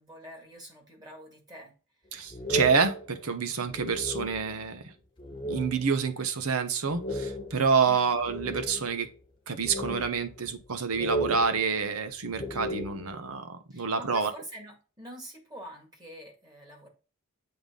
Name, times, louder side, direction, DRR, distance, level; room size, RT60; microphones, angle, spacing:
voice 1, 0.0-1.7 7.8-8.1 13.7-16.9, equal, 20° right, 1.9 m, -46 dB
voice 2, 2.1-4.9 5.5-9.1 9.5-14.3, right 5 dB, 80° right, 0.9 m, -28 dB
sound 1, 2.3-4.7 5.2-6.0 6.4-6.5 6.9-9.1 9.6-10.7 10.9-13.3, right 1 dB, 20° left, 1.1 m, -35 dB
7.8 x 3.7 x 3.7 m
head